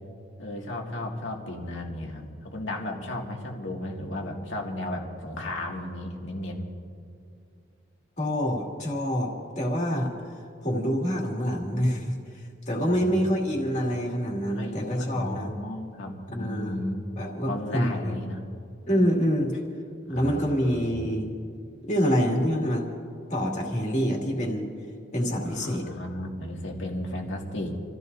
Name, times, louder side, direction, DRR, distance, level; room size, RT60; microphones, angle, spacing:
voice 1, 0.4-6.7 12.9-13.4 14.5-17.1 17.5-18.5 20.1-21.0 25.4-27.8, left 1 dB, 80° left, 0 dB, 2.1 m, -34 dB
voice 2, 8.2-10.1 10.6-15.5 16.3-16.8 17.2-18.2 18.9-19.5 20.1-21.3 21.8-22.9 23.3-24.7 25.1-25.9, equal, 40° left, -1 dB, 2.4 m, -26 dB
29.5 x 15.0 x 2.7 m, 2.3 s
head